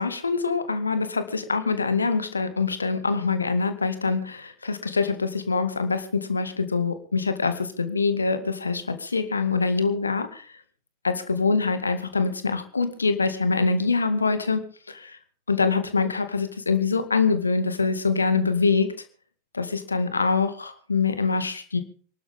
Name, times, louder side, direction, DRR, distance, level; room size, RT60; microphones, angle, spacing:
voice 1, 0.0-10.5 11.0-14.6 14.9-15.2 15.5-18.9 19.5-21.8, left 4 dB, 75° left, 10 dB, 2.0 m, -24 dB
26.5 x 12.0 x 3.7 m, 0.43 s
figure-of-eight pair, 90°, 0 cm